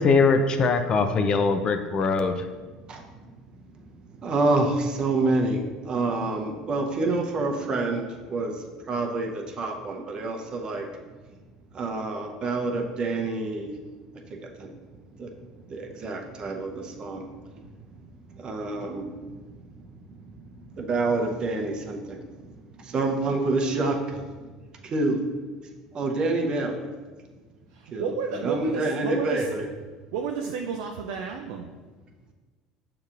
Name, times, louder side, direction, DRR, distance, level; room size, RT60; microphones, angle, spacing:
voice 1, 0.0-2.4, left 4 dB, 40° left, 7 dB, 0.4 m, -21 dB
voice 2, 4.2-8.6 8.9-10.9 11.7-13.7 14.4-14.7 15.2-15.3 15.7-17.2 18.4-19.1 20.7-22.3 22.8-24.3 24.8-25.2 25.9-26.9 27.9-29.7, right 2 dB, 40° right, 2 dB, 0.7 m, -27 dB
voice 3, 27.8-29.5 30.1-31.7, right 6 dB, 75° right, 2 dB, 0.3 m, -31 dB
6.4 x 2.8 x 2.5 m, 1.4 s
hypercardioid pair, 85°, 2 cm